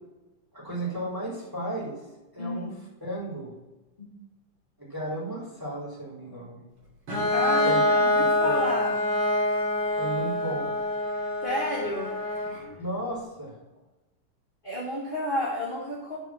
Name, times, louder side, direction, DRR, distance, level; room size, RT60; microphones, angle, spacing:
voice 1, 0.5-1.9 2.3-2.7 3.0-3.5 4.8-6.6 7.6-7.8 8.4-8.6 10.0-10.7 12.8-13.5, right 1 dB, 5° right, -6 dB, 3.1 m, -34 dB
voice 2, 2.4-2.7 4.0-4.1 7.3-9.0 11.4-12.1 14.6-16.2, left 1 dB, 30° left, -6 dB, 0.9 m, -31 dB
Bowed string instrument, 7.1-12.7, left 1 dB, 45° right, 3.6 m, -25 dB
10.5 x 4.8 x 5.9 m, 1.1 s
omnidirectional pair, 3.7 m